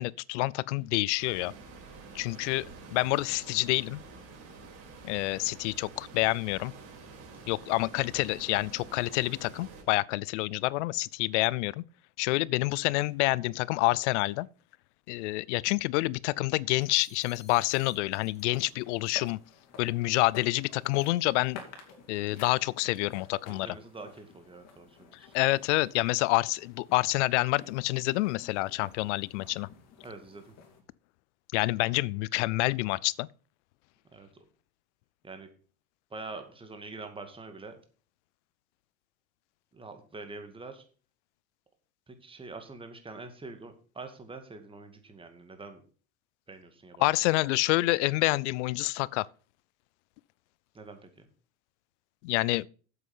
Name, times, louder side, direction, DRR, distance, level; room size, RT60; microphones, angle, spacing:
voice 1, 0.0-1.5 2.1-4.0 5.0-6.7 7.5-11.8 12.2-14.5 15.1-19.4 19.8-21.6 22.1-23.8 25.3-29.7 31.5-33.3 47.0-49.3 52.2-52.7, left 21 dB, 80° left, 0.5 m, -28 dB
sound 1, 1.2-9.8, right 4 dB, 45° right, 4.8 m, -48 dB
cat pouring food into a bowl, 16.8-18.7 19.0-19.3, left 4 dB, 20° left, 1.9 m, -56 dB
sound 2, 18.3-30.8, left 5 dB, 45° left, 2.9 m, -51 dB
voice 2, 23.5-25.3 30.0-30.5 34.1-34.3 35.2-35.5 36.1-37.7 39.7-40.8 42.1-45.8 46.5-47.1 50.7-51.3, right 3 dB, 15° right, 2.2 m, -45 dB
8.1 x 7.9 x 5.5 m
supercardioid pair, 110°, 35 cm